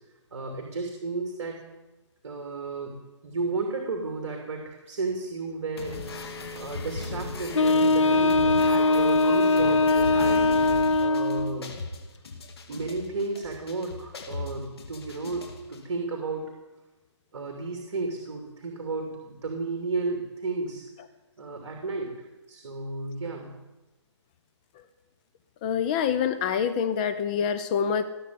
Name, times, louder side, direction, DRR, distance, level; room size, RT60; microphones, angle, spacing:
voice 1, 0.3-1.6 2.2-2.9 3.2-6.0 6.5-10.5 11.0-11.8 12.7-16.5 17.3-20.8 21.4-22.1 22.5-23.5, right 3 dB, 60° right, 2 dB, 2.9 m, -33 dB
sound 1, 5.8-15.8, left 3 dB, 55° left, 2.5 m, -37 dB
Wind instrument woodwind instrument, 7.5-11.6, left 2 dB, 75° left, 0.9 m, -21 dB
voice 2, 25.6-28.0, left 7 dB, 15° left, 10 dB, 0.6 m, -26 dB
19.0 x 7.0 x 9.4 m, 1.1 s
hypercardioid pair, 165°, 16 cm